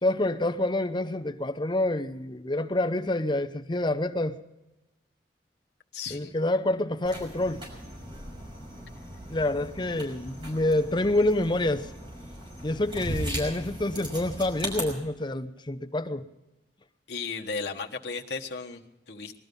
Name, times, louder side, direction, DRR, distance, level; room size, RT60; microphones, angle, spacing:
voice 1, 0.0-4.4 6.1-7.6 9.3-11.9 12.6-16.2, left 1 dB, 25° left, 0.8 m, -27 dB
voice 2, 5.9-6.3 17.1-19.4, left 4 dB, 70° left, 1.3 m, -35 dB
sound 1, 7.0-14.8, equal, 30° right, 5.8 m, -38 dB
21.0 x 13.0 x 5.3 m
head